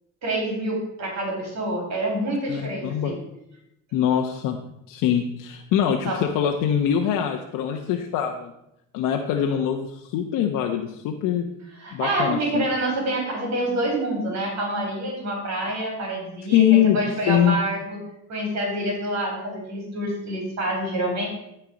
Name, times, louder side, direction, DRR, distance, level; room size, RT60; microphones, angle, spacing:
voice 1, 0.2-3.2 6.1-6.2 11.8-16.6 16.9-18.0 18.3-21.3, right 1 dB, 55° right, 0 dB, 3.9 m, -27 dB
voice 2, 2.5-3.2 3.9-4.6 4.9-8.5 8.9-11.5 11.9-12.7 16.5-17.0 17.3-17.6, left 9 dB, 70° left, 2 dB, 0.9 m, -23 dB
13.5 x 4.5 x 5.0 m, 0.84 s
supercardioid pair, 100°, 33 cm